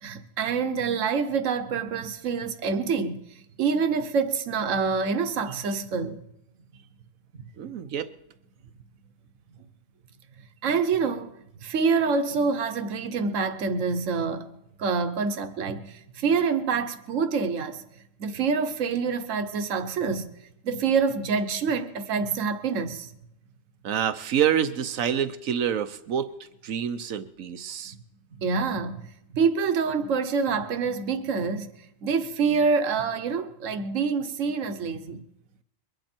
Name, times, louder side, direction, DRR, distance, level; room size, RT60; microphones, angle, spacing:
voice 1, 0.0-3.2 3.6-6.2 10.6-11.3 11.6-14.5 14.8-17.8 18.2-20.3 20.6-23.1 27.9-28.0 28.4-29.1 29.3-31.7 32.0-35.2, right 5 dB, 70° right, 1.3 m, -26 dB
voice 2, 7.6-8.1 23.8-26.3 26.6-27.9, right 9 dB, 90° right, 1.3 m, -27 dB
22.5 x 10.5 x 4.4 m
omnidirectional pair, 1.3 m